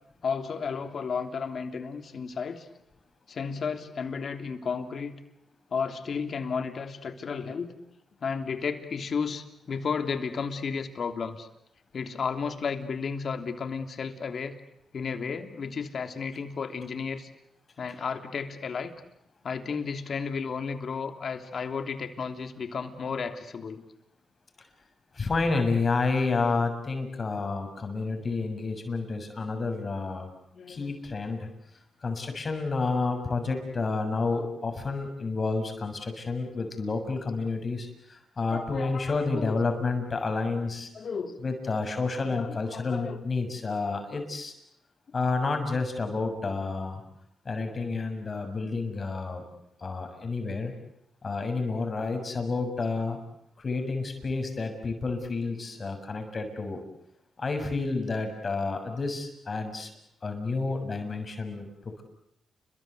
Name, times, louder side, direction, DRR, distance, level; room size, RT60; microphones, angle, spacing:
voice 1, 0.2-2.7 3.3-5.2 5.7-7.8 8.2-11.5 11.9-14.6 14.9-17.3 17.8-18.9 19.4-23.8 30.5-30.9 38.4-39.6 40.9-41.4 42.2-43.2, left 5 dB, 60° left, 7 dB, 3.1 m, -33 dB
voice 2, 25.1-30.3 30.7-31.5 32.0-40.9 41.4-44.5 45.1-47.0 47.4-49.4 49.8-50.7 51.2-53.2 53.6-56.8 57.4-59.9 60.2-62.0, left 3 dB, 45° left, 5 dB, 6.8 m, -30 dB
30.0 x 23.0 x 8.2 m, 0.76 s
cardioid pair, 60°, 0 cm